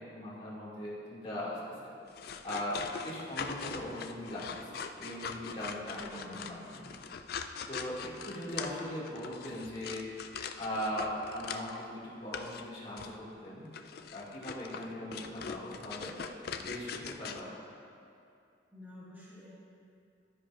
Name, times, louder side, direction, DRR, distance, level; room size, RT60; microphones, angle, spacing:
voice 1, 0.0-1.9 2.4-6.9 7.7-10.1 10.6-13.7 14.1-16.2 16.6-17.5, left 1 dB, 30° left, -7 dB, 2.1 m, -39 dB
sound 1, 2.1-11.8 12.3-12.6 13.0-13.2 13.7-17.4, left 6 dB, 50° left, 0.4 m, -42 dB
voice 2, 5.8-6.7 18.7-19.5, equal, 10° right, -9 dB, 1.8 m, -49 dB
12.0 x 9.8 x 2.5 m, 2.5 s
head